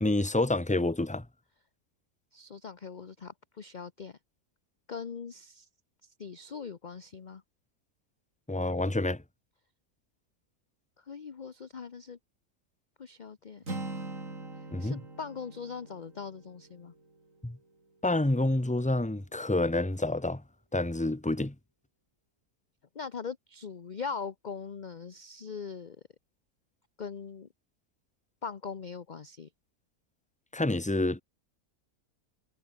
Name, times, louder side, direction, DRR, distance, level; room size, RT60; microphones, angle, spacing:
voice 1, 0.0-1.2 8.5-9.2 14.7-15.0 17.4-17.6 18.0-20.4 20.7-21.5 30.5-31.2, left 2 dB, 5° left, 1.3 m, -28 dB
voice 2, 2.3-4.2 4.9-5.7 6.2-7.4 11.0-12.2 13.0-13.6 14.8-16.9 22.9-26.0 27.0-27.5 28.4-29.5, left 5 dB, 35° left, 0.8 m, -41 dB
Acoustic guitar, 13.6-17.6, right 2 dB, 55° right, 5.3 m, -42 dB
omnidirectional pair, 1.6 m